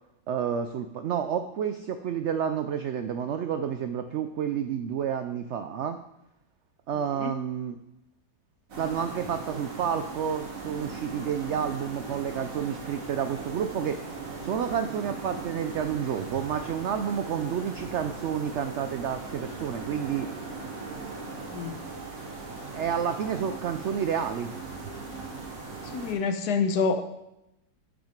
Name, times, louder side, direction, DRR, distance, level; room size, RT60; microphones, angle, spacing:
voice 1, 0.3-6.0 6.9-7.8 8.8-14.0 14.4-20.3 22.7-24.5, right 8 dB, 80° right, 8 dB, 0.6 m, -30 dB
sound 1, 8.7-26.1, right 3 dB, 55° right, 1.8 m, -39 dB
voice 2, 25.9-27.0, left 5 dB, 80° left, 8 dB, 1.4 m, -27 dB
8.8 x 6.0 x 5.1 m, 0.87 s
omnidirectional pair, 1.7 m